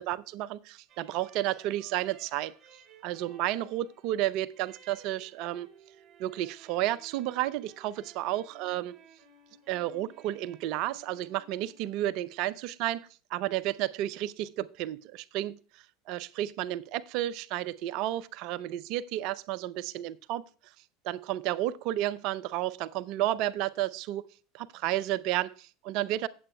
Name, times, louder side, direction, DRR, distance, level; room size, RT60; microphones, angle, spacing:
voice 1, 0.0-2.5 3.0-5.7 6.2-9.0 9.7-15.6 16.1-20.4 21.0-24.3 24.5-26.3, right 14 dB, 55° right, 19 dB, 0.5 m, -32 dB
sound 1, 0.9-12.3, right 5 dB, 30° right, 3.2 m, -57 dB
17.5 x 7.8 x 2.2 m, 0.38 s
hypercardioid pair, 75°, 0 cm